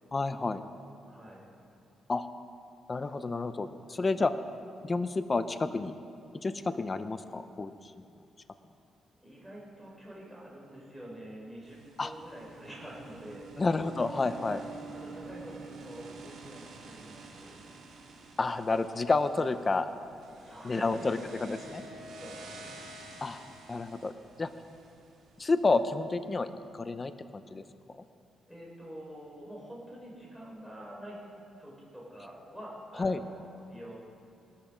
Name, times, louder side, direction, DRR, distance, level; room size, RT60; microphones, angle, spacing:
voice 1, 0.1-0.6 2.1-2.3 2.9-4.3 4.8-5.9 6.4-8.1 12.0-12.1 13.6-14.6 18.4-19.9 20.6-21.8 23.2-24.1 24.4-24.5 25.4-27.6 33.0-33.2, left 3 dB, 25° left, 11 dB, 0.6 m, -30 dB
voice 2, 1.0-1.5 9.2-13.5 14.4-17.5 20.4-22.9 28.5-31.3 31.6-33.9, equal, ahead, -4 dB, 4.9 m, -47 dB
sound 1, 11.6-25.8, right 3 dB, 65° right, 3.5 m, -49 dB
20.0 x 13.0 x 5.1 m, 2.7 s
cardioid pair, 115°, 0 cm